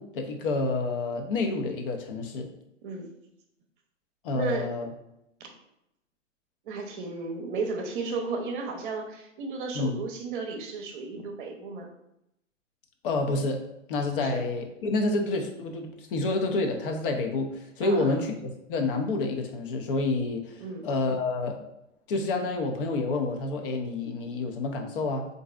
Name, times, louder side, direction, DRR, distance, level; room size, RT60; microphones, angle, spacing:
voice 1, 0.0-2.5 4.2-4.9 9.7-10.0 13.0-13.6 13.9-18.3 18.7-21.6 22.1-25.3, left 3 dB, 45° left, 4 dB, 0.6 m, -28 dB
voice 2, 4.3-4.7 6.6-11.9 14.1-14.4 17.8-18.2 20.6-20.9, right 4 dB, 40° right, 2 dB, 0.7 m, -34 dB
3.9 x 2.6 x 2.4 m, 0.83 s
hypercardioid pair, 115°, 38 cm